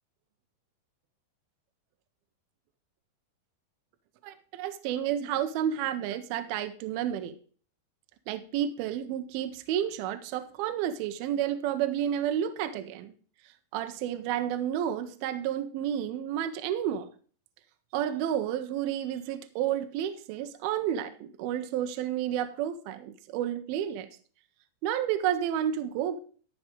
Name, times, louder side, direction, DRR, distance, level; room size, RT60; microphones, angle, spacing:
voice 1, 4.2-7.4 8.3-13.1 13.7-17.1 17.9-24.1 24.8-26.2, right 10 dB, 80° right, 9 dB, 2.3 m, -31 dB
12.5 x 6.2 x 5.1 m, 0.44 s
omnidirectional pair, 4.7 m